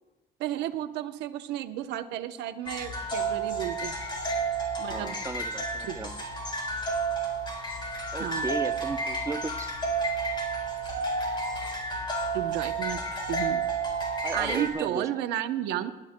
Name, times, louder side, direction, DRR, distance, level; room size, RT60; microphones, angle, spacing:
voice 1, 0.4-3.9 4.8-5.3 5.8-6.0 8.2-8.5 12.3-13.6 14.3-15.9, right 12 dB, 90° right, 8 dB, 0.8 m, -33 dB
sound 1, 2.6-14.7, right 3 dB, 30° left, 4.2 m, -31 dB
voice 2, 4.8-6.2 8.1-9.7 14.2-15.1, right 3 dB, 15° right, 10 dB, 0.6 m, -35 dB
29.0 x 11.5 x 2.2 m, 1.1 s
cardioid pair, 110°, 17 cm